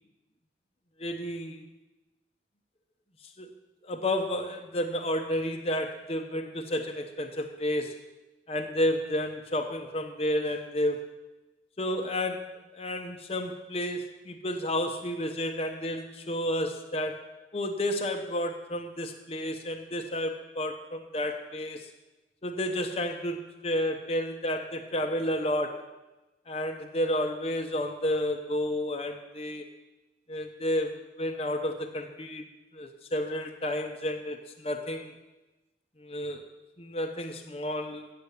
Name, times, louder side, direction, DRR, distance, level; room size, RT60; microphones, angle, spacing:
voice 1, 1.0-1.7 3.4-3.5 3.8-8.0 8.5-11.1 11.8-17.2 17.5-21.9 22.4-25.9 26.5-29.7 30.3-32.4 32.7-35.1 36.0-36.4 36.8-38.1, left 1 dB, 35° left, 4 dB, 0.8 m, -31 dB
8.2 x 6.8 x 8.3 m, 1.1 s
head